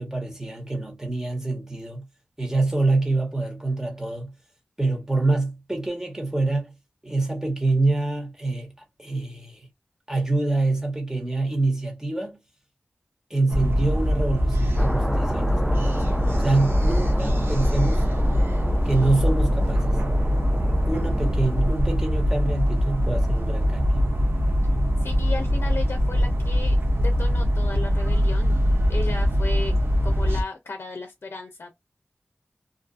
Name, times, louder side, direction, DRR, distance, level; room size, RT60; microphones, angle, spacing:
voice 1, 0.0-2.0 2.4-4.3 4.8-6.7 7.0-8.7 9.0-9.7 10.1-12.4 13.3-15.9 16.4-18.1 18.8-20.0 20.8-23.9, right 2 dB, 15° right, 1.3 m, -26 dB
sound 1, 13.5-30.4, equal, 80° right, 0.7 m, -22 dB
sound 2, 14.8-21.7, equal, 5° left, 0.5 m, -33 dB
voice 2, 25.0-28.6 28.9-29.7 30.0-31.7, left 3 dB, 80° left, 0.5 m, -35 dB
2.6 x 2.4 x 2.4 m
wide cardioid pair, 45°, 4 cm